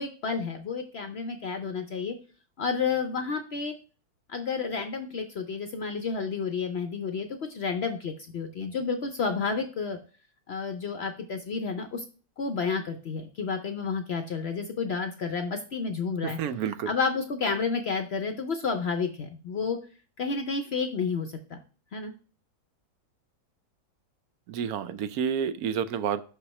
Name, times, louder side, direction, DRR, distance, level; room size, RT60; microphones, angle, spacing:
voice 1, 0.0-2.2 2.6-3.7 4.3-10.0 10.5-12.0 12.4-16.4 16.9-19.8 20.2-21.6 21.9-22.1, left 5 dB, 60° left, 7 dB, 0.7 m, -30 dB
voice 2, 16.2-16.9 24.5-26.2, right 8 dB, 75° right, 12 dB, 1.0 m, -29 dB
6.0 x 5.6 x 3.1 m, 0.37 s
omnidirectional pair, 1.7 m